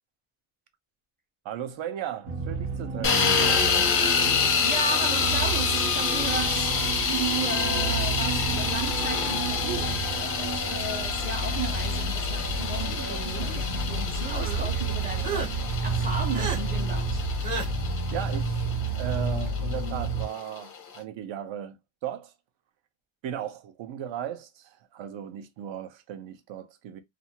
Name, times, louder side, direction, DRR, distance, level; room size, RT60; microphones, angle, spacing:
voice 1, 1.4-3.7 18.1-22.3 23.2-27.0, right 10 dB, 65° right, 0.7 m, -37 dB
sound 1, 2.2-20.2, right 3 dB, 85° right, 1.1 m, -30 dB
sound 2, 3.0-21.0, left 6 dB, 30° left, 0.4 m, -28 dB
voice 2, 4.6-6.8 7.1-17.2, right 3 dB, 20° right, 0.6 m, -35 dB
sound 3, 12.8-13.6 14.2-14.7 15.2-15.5 16.3-16.6 17.4-17.7, right 4 dB, 40° right, 1.0 m, -34 dB
2.5 x 2.4 x 2.8 m
cardioid pair, 175°, 49 cm